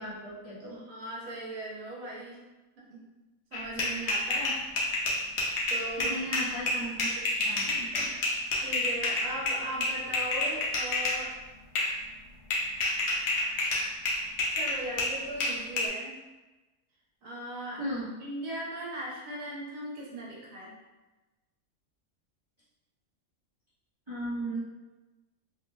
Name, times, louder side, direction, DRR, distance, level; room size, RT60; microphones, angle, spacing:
voice 1, 0.0-0.8 6.0-7.1 7.3-8.1 17.8-18.1 24.1-24.6, right 1 dB, 40° right, -10 dB, 0.4 m, -36 dB
voice 2, 0.7-2.4 2.8-3.0 3.5-4.6 5.0-5.3 5.7-6.1 8.5-11.3 14.5-16.2 17.2-17.8 18.2-20.7, right 1 dB, 70° right, -3 dB, 1.2 m, -38 dB
sound 1, 3.5-11.2 11.7-12.0 12.5-15.9, left 2 dB, 55° left, 0.8 m, -29 dB
3.5 x 2.1 x 3.3 m, 1.1 s
omnidirectional pair, 1.6 m